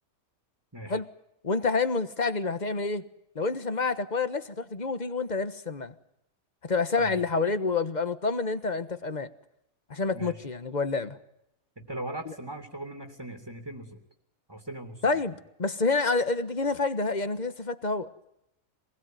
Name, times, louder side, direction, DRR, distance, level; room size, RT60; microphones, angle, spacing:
voice 1, 1.4-3.0 3.3-5.9 6.7-9.3 9.9-11.2 12.3-12.4 15.0-15.3 15.6-18.1, left 3 dB, 30° left, 12 dB, 1.4 m, -28 dB
voice 2, 11.8-14.0 14.5-15.0, right 1 dB, 15° right, 4 dB, 2.8 m, -39 dB
26.5 x 20.5 x 9.4 m, 0.82 s
omnidirectional pair, 1.5 m